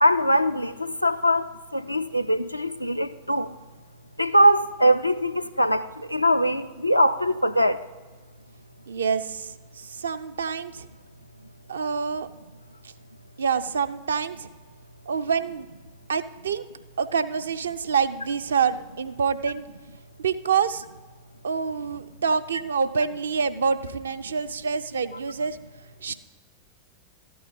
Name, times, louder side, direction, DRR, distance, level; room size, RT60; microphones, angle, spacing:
voice 1, 0.0-1.5 1.7-3.5 4.2-7.8, equal, 90° left, 0.4 m, -22 dB
voice 2, 8.9-10.9 11.7-12.3 12.8-12.9 13.4-14.5 15.1-15.7 16.1-16.7 17.0-19.6 20.2-20.8 21.4-25.6 26.0-26.1, right 6 dB, 70° right, 0.4 m, -26 dB
13.0 x 8.6 x 3.8 m
figure-of-eight pair, 90°, 0 cm